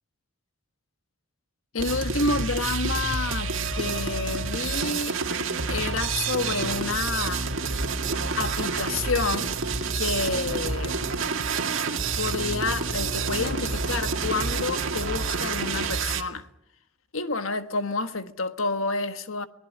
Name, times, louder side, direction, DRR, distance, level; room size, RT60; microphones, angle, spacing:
voice 1, 1.7-5.2 5.7-7.5 8.4-9.5 10.0-11.0 12.2-16.5 17.1-19.5, left 3 dB, 80° left, 1.5 m, -29 dB
sound 1, 1.8-16.2, right 4 dB, 70° right, 2.1 m, -28 dB
23.0 x 19.0 x 9.3 m
head